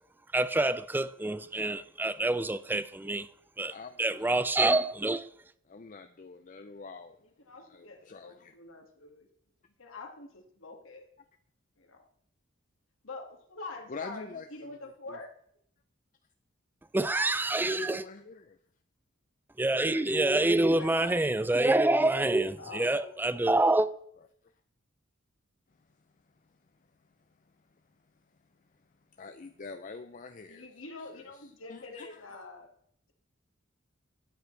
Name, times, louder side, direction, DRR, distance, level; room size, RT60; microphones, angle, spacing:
voice 1, 0.3-3.3 3.6-5.3 16.9-18.0 19.6-23.9, right 2 dB, 10° right, 0.4 m, -27 dB
voice 2, 3.7-4.3 5.7-7.2 7.6-8.5 13.9-14.8 15.1-15.2 17.7-18.6 19.9-20.9 29.2-30.7 31.1-32.3, left 4 dB, 40° left, 0.5 m, -45 dB
voice 3, 7.2-9.3 9.8-11.1 11.8-12.0 13.0-15.3 20.7-21.6 22.6-23.1 30.5-32.7, left 3 dB, 85° left, 2.0 m, -45 dB
13.0 x 9.5 x 3.3 m
head